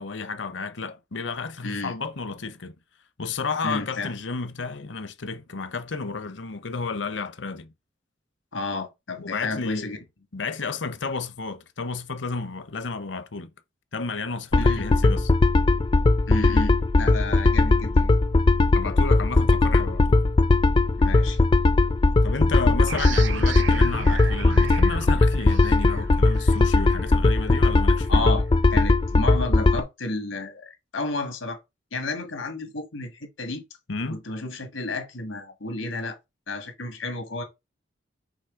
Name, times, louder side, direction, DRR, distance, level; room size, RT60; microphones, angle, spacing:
voice 1, 0.0-2.8 3.2-7.7 9.2-10.0 10.3-13.5 13.9-15.3 18.7-20.3 22.2-28.2 33.9-34.2, left 4 dB, 65° left, 0.7 m, -32 dB
voice 2, 1.6-2.0 3.6-4.1 8.5-10.0 14.6-14.9 16.3-18.2 21.0-21.4 22.9-23.0 28.1-28.4 28.7-31.6 31.9-33.6 34.1-36.2 36.5-37.4, left 2 dB, 90° left, 1.7 m, -31 dB
sound 1, 14.5-29.8, left 2 dB, 25° left, 0.3 m, -19 dB
sound 2, 22.9-28.2, right 5 dB, 70° right, 0.7 m, -36 dB
6.0 x 3.1 x 5.0 m
head